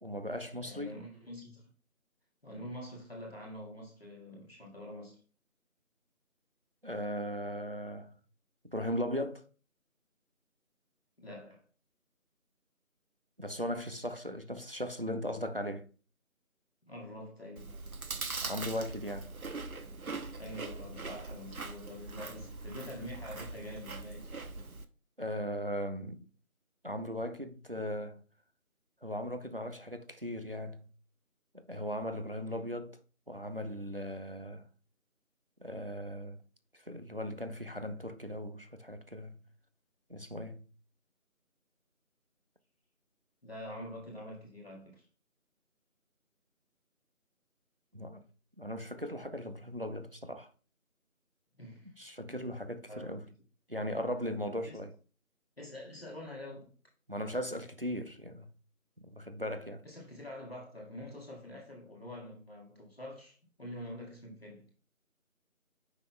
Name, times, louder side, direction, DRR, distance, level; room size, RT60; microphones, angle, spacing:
voice 1, 0.0-1.0 6.8-8.2 8.6-9.5 13.4-15.9 18.4-19.3 25.2-26.3 26.8-28.2 29.0-30.9 31.5-33.0 33.3-34.7 35.6-36.4 36.7-39.4 40.1-40.7 47.9-48.2 48.6-50.5 52.0-53.3 53.7-54.9 57.1-58.5 59.0-59.8, equal, 40° right, 0.7 m, -38 dB
voice 2, 0.6-1.7 2.4-5.2 11.2-11.6 16.9-17.7 20.4-24.4 32.5-32.7 43.4-45.1 51.6-52.0 52.9-53.2 54.6-54.8 55.6-56.7 59.8-64.7, left 1 dB, 45° left, 1.9 m, -46 dB
Chewing mastication, 17.6-24.9, right 3 dB, 80° right, 1.0 m, -42 dB
9.3 x 5.8 x 2.3 m
figure-of-eight pair, 180°, 43 cm